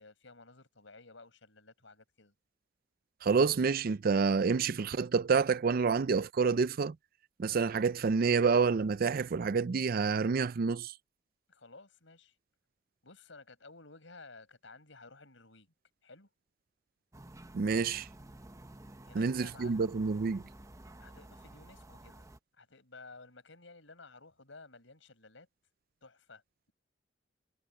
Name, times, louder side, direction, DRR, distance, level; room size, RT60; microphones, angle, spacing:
voice 1, 0.0-2.3 11.5-12.4 13.0-15.7 16.0-16.3 19.0-20.1 21.0-22.3 22.5-25.5 26.0-26.4, left 3 dB, 80° left, 5.6 m, -54 dB
voice 2, 3.2-7.0 7.4-10.9 17.5-18.1 19.1-20.4, right 5 dB, 50° right, 0.4 m, -28 dB
sound 1, 17.1-22.4, right 1 dB, 15° right, 0.9 m, -52 dB
head